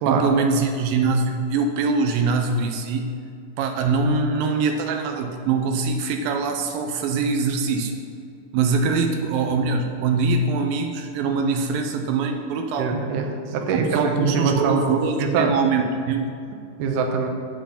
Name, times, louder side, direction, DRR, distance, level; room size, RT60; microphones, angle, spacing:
voice 1, 0.1-3.1 3.6-8.0 8.5-12.9 13.7-16.6, right 4 dB, 90° right, 4 dB, 2.4 m, -23 dB
voice 2, 12.8-14.8 15.2-15.5 16.8-17.3, right 5 dB, 70° right, 3 dB, 2.4 m, -23 dB
8.6 x 8.0 x 5.8 m, 2.4 s
omnidirectional pair, 4.1 m